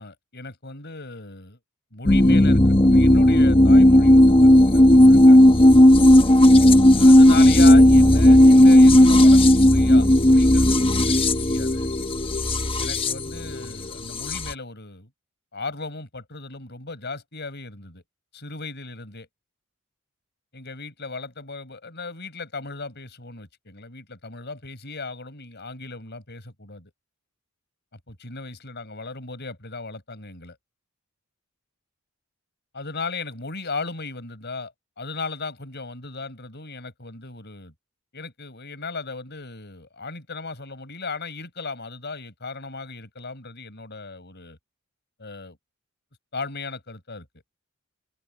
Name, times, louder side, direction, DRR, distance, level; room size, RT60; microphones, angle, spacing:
voice 1, 0.0-1.6 1.9-5.4 6.9-11.9 12.8-15.1 15.5-18.0 18.3-19.3 20.5-26.9 28.1-30.6 32.7-37.7 38.1-44.6 45.2-45.6 46.3-47.3, left 3 dB, 50° left, 6.0 m, -36 dB
sound 1, 2.1-14.5, left 1 dB, 25° left, 1.2 m, -14 dB
open air
head